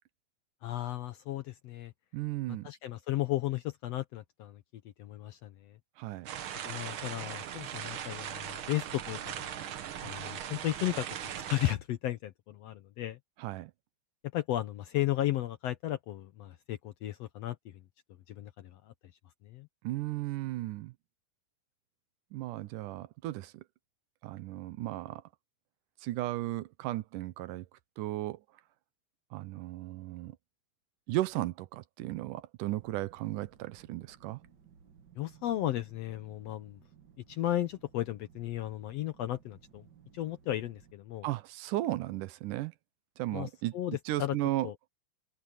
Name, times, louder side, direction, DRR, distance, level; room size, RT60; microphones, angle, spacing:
voice 1, 0.6-1.9 2.6-4.6 5.0-5.8 6.6-9.5 10.0-11.1 11.4-13.2 14.3-17.8 18.3-18.9 19.4-19.7 35.2-36.8 37.3-39.9 40.1-41.3 43.3-43.5 43.7-44.4 44.6-44.7, left 14 dB, 70° left, 1.6 m, -34 dB
voice 2, 2.1-2.7 6.0-6.3 13.4-13.7 19.8-20.9 22.3-23.6 24.2-25.2 26.0-27.7 28.0-28.4 29.3-30.3 31.1-34.4 41.2-42.7 43.2-43.8 44.1-44.7, right 16 dB, 85° right, 2.3 m, -35 dB
sound 1, 6.3-11.7, right 10 dB, 65° right, 1.3 m, -39 dB
sound 2, 32.6-40.9, right 8 dB, 50° right, 1.4 m, -60 dB
omnidirectional pair, 3.7 m